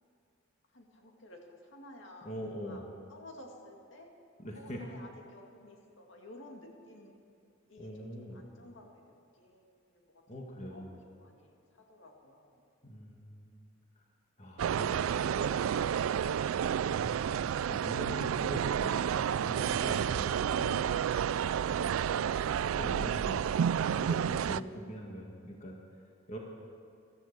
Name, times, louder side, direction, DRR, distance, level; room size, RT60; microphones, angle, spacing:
voice 1, 0.7-2.3 2.6-2.8 3.1-4.1 4.5-7.2 7.7-9.0 9.3-10.2 10.6-12.7, left 1 dB, 65° left, 1 dB, 2.1 m, -53 dB
voice 2, 2.2-2.8 4.4-4.8 7.8-8.4 10.3-11.0 12.8-13.6 14.0-14.1 14.4-15.9 16.9-19.1 19.4-21.1 21.5-26.4, equal, 35° left, -1 dB, 1.8 m, -43 dB
sound 1, 14.6-24.6, right 8 dB, 80° right, 0.3 m, -30 dB
15.5 x 13.0 x 6.8 m, 2.5 s
head